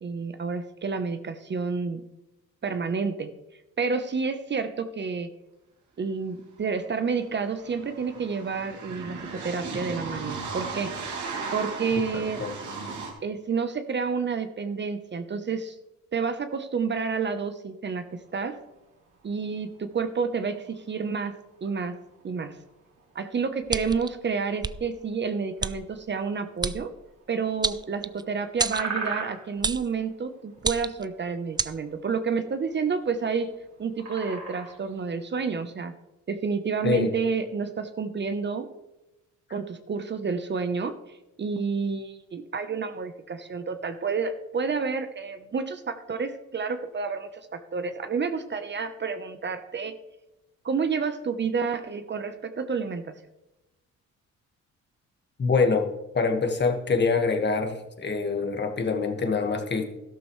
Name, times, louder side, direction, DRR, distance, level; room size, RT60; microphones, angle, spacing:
voice 1, 0.0-2.0 2.6-3.3 3.8-5.3 6.0-10.9 11.5-12.4 13.2-15.8 16.1-18.6 19.2-21.3 21.6-22.0 22.2-22.5 23.1-26.9 27.3-33.5 33.8-35.9 36.3-38.7 39.5-49.9 50.6-53.1, right 5 dB, 35° right, 9 dB, 0.9 m, -29 dB
sound 1, 6.6-6.7 6.9-13.1, right 4 dB, 75° right, 2.9 m, -36 dB
voice 2, 12.1-12.5 36.8-37.1 55.4-55.9 56.1-59.8, left 4 dB, 35° left, 5 dB, 1.7 m, -25 dB
sound 2, 18.1-35.2, right 4 dB, 55° right, 3.5 m, -43 dB
sound 3, 23.7-24.1 24.6-24.8 25.6-25.7 26.6-26.8 27.6-28.2 28.6-28.9 29.6-29.9 30.6-31.1 31.6-31.7, right 4 dB, 15° right, 0.4 m, -28 dB
13.0 x 12.0 x 3.2 m, 0.98 s
cardioid pair, 90°, 30 cm